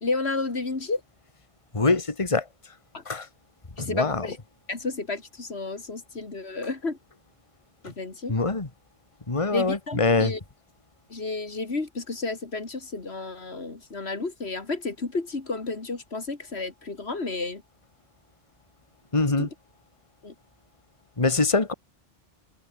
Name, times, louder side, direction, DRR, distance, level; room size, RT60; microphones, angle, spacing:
voice 1, 0.0-1.0 2.9-3.0 3.8-4.4 4.7-7.0 7.8-8.3 9.5-10.4 11.1-17.6 19.4-19.5 20.2-20.3, left 3 dB, 85° left, 3.0 m, -31 dB
voice 2, 1.7-2.5 3.1-3.3 3.8-4.3 8.3-8.7 9.3-10.3 19.1-19.5 21.2-21.7, left 3 dB, 30° left, 1.9 m, -24 dB
open air
omnidirectional pair, 1.1 m